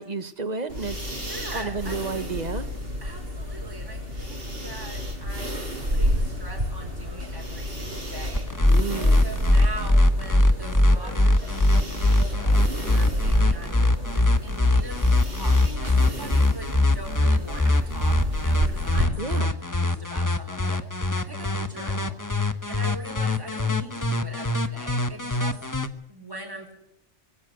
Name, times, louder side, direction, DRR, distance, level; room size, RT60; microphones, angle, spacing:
voice 1, 0.0-1.1 1.5-2.7 8.7-9.2 19.2-19.5, right 4 dB, 35° right, 11 dB, 1.6 m, -31 dB
sound 1, 0.7-19.1, equal, 55° right, 5.4 m, -31 dB
voice 2, 1.0-2.4 3.0-22.2 22.6-25.7 26.1-26.7, right 1 dB, 20° right, 1 dB, 5.0 m, -42 dB
sound 2, 5.7-14.2, left 1 dB, 35° left, 6.6 m, -48 dB
sound 3, 8.3-25.9, left 1 dB, 15° left, 1.1 m, -21 dB
22.5 x 17.0 x 7.8 m, 0.76 s
omnidirectional pair, 1.2 m